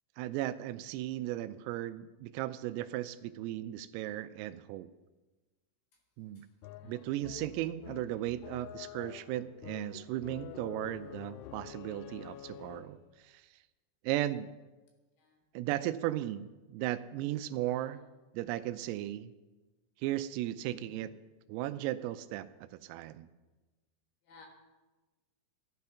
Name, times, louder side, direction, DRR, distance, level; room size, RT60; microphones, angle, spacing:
voice 1, 0.2-4.9 6.2-6.5 6.8-13.0 13.2-13.4 14.0-14.5 15.5-18.0 18.3-19.3 20.0-21.1 21.5-22.5 22.8-23.3, right 14 dB, 85° right, 13 dB, 3.3 m, -36 dB
voice 2, 6.4-7.0 15.2-15.4 17.8-18.1 20.7-21.0 24.3-24.5, left 3 dB, 65° left, 1 dB, 2.9 m, -57 dB
sound 1, 6.6-13.1, left 14 dB, 90° left, 2.7 m, -48 dB
15.5 x 10.5 x 5.6 m, 1.2 s
omnidirectional pair, 6.0 m